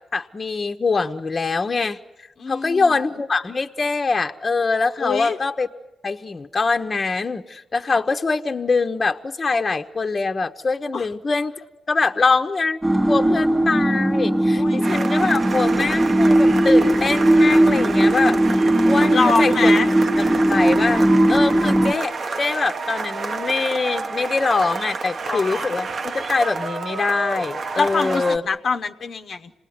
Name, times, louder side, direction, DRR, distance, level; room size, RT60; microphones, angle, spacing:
voice 1, 0.1-2.0 2.5-5.7 6.0-11.5 11.9-12.8 13.1-19.8 20.2-28.4, left 4 dB, 40° left, 5 dB, 0.9 m, -23 dB
voice 2, 2.4-2.9 5.0-5.4 10.9-11.1 14.5-14.9 19.1-19.9 25.2-25.7 27.7-29.5, left 4 dB, 70° left, 5 dB, 0.9 m, -24 dB
sound 1, 12.8-21.9, right 1 dB, 10° right, 0.9 m, -18 dB
sound 2, 14.8-28.4, right 4 dB, 60° right, 1.0 m, -29 dB
27.0 x 19.0 x 9.5 m, 1.0 s
cardioid pair, 70°, 0 cm